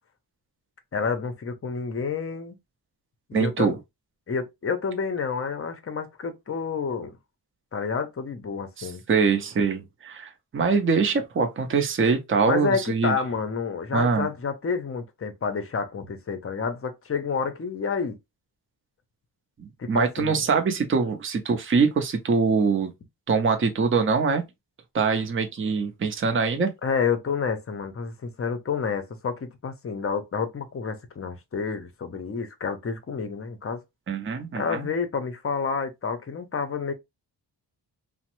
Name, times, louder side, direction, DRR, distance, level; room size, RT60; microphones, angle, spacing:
voice 1, 0.9-2.6 3.3-3.8 4.3-7.1 7.7-9.0 12.5-18.2 19.8-20.4 26.8-33.8 34.5-36.9, left 5 dB, 35° left, 0.6 m, -29 dB
voice 2, 3.3-3.8 8.8-13.1 13.9-14.3 19.6-22.9 23.3-24.5 24.9-26.7 34.1-34.9, right 5 dB, 30° right, 0.6 m, -23 dB
3.0 x 2.1 x 2.9 m
wide cardioid pair, 130°, 40 cm